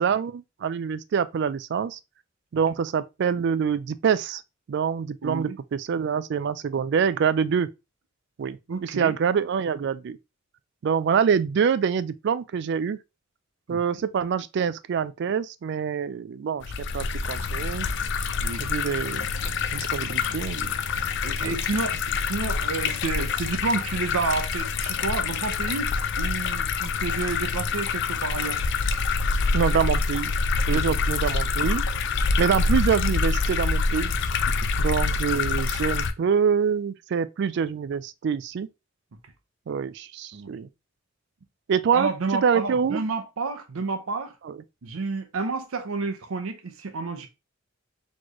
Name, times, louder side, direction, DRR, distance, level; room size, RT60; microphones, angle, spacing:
voice 1, 0.0-2.0 2.5-4.4 4.7-7.7 8.4-10.2 10.8-13.0 13.7-17.9 18.6-19.3 19.7-20.7 21.4-21.6 29.5-30.3 30.7-31.8 32.4-34.1 34.8-38.7 39.7-40.7 41.7-42.1 42.4-43.0 44.4-44.6, right 7 dB, 55° right, 0.3 m, -25 dB
voice 2, 5.2-5.6 8.7-9.2 13.7-13.8 18.4-18.7 20.3-20.4 21.2-28.6 30.7-31.0 34.5-34.7 40.3-40.5 41.9-44.3 44.8-47.3, right 4 dB, 90° right, 0.6 m, -30 dB
sound 1, 16.6-36.1, left 4 dB, 60° left, 0.4 m, -26 dB
4.3 x 3.1 x 2.9 m
head